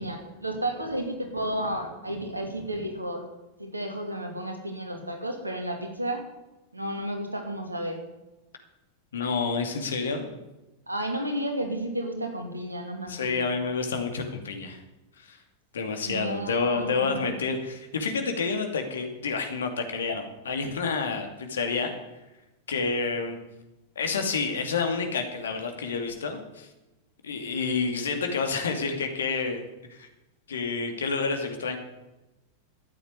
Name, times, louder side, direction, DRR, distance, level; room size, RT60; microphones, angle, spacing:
voice 1, 0.0-3.3 3.6-6.2 6.7-8.0 10.9-13.5 16.0-17.3, right 1 dB, 85° right, 4 dB, 2.9 m, -32 dB
voice 2, 9.1-10.3 13.1-14.8 15.2-15.4 15.7-21.9 22.7-23.4 24.0-26.7 27.2-29.6 29.9-30.1 30.5-31.8, left 4 dB, 65° left, 5 dB, 2.5 m, -29 dB
13.0 x 8.9 x 9.5 m, 1.0 s
figure-of-eight pair, 90°, 0 cm